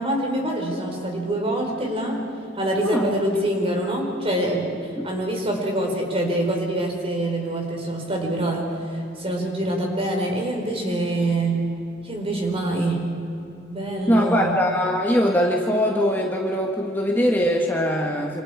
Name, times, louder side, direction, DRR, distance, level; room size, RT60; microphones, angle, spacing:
voice 1, 0.0-2.3 2.5-11.7 12.0-13.1 13.7-14.6, right 1 dB, 30° right, 1 dB, 4.4 m, -25 dB
voice 2, 14.1-18.4, equal, 10° left, 0 dB, 1.6 m, -21 dB
27.5 x 27.0 x 5.0 m, 2.7 s
head